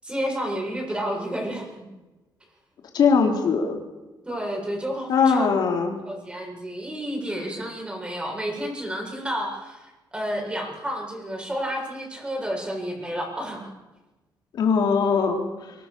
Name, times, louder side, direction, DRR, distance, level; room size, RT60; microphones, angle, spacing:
voice 1, 0.0-1.9 4.3-5.5 6.1-13.7, equal, 15° right, 0 dB, 7.7 m, -31 dB
voice 2, 2.9-3.8 5.1-6.0 14.5-15.4, left 5 dB, 65° left, 3 dB, 3.4 m, -20 dB
24.0 x 20.5 x 7.0 m, 1.1 s
cardioid pair, 125°, 8 cm